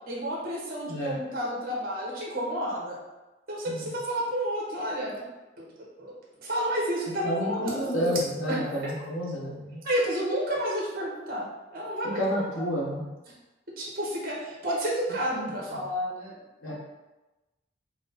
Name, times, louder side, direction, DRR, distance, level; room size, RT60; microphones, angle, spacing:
voice 1, 0.1-3.0 3.5-5.2 5.6-5.7 6.0-6.1 6.4-8.9 9.8-12.2 12.6-12.7 13.8-16.4, equal, 45° right, -4 dB, 1.2 m, -31 dB
voice 2, 7.2-9.8 12.1-13.0 15.3-15.5 16.6-16.7, equal, 85° left, -4 dB, 1.3 m, -30 dB
4.9 x 2.2 x 4.1 m, 1.1 s
head